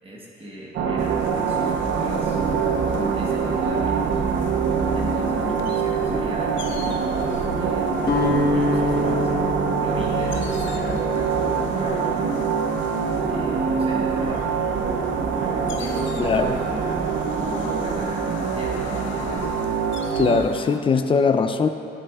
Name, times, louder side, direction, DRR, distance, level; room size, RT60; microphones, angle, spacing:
voice 1, 0.0-2.4 2.8-4.2 4.9-7.9 8.5-9.3 9.8-12.6 13.2-14.7 15.4-17.0 17.3-19.5, equal, 30° right, -4 dB, 1.2 m, -37 dB
sound 1, 0.7-20.4, right 6 dB, 65° right, 0.6 m, -24 dB
sound 2, 1.0-20.8, left 6 dB, 70° left, 0.6 m, -38 dB
Guitar, 8.0-14.1, left 2 dB, 55° left, 1.3 m, -27 dB
voice 2, 16.2-16.6 20.2-21.7, left 5 dB, 25° left, 8 dB, 0.4 m, -20 dB
11.0 x 7.5 x 2.3 m, 2.8 s
cardioid pair, 90°, 20 cm